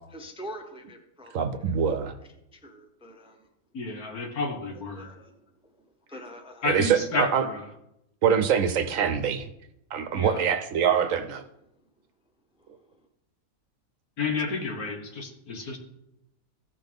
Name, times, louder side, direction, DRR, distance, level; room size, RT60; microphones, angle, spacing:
voice 1, 0.1-1.4 2.5-3.5 4.7-5.3 5.6-6.7 12.6-13.1, equal, 5° right, 4 dB, 0.6 m, -45 dB
voice 2, 1.3-2.1 6.6-7.5 8.2-9.5 9.9-11.4, right 7 dB, 65° right, 9 dB, 1.0 m, -24 dB
voice 3, 3.7-5.1 6.6-7.6 10.1-10.4 14.2-15.8, left 3 dB, 70° left, 3 dB, 1.9 m, -31 dB
15.0 x 5.8 x 3.5 m, 0.83 s
omnidirectional pair, 1.6 m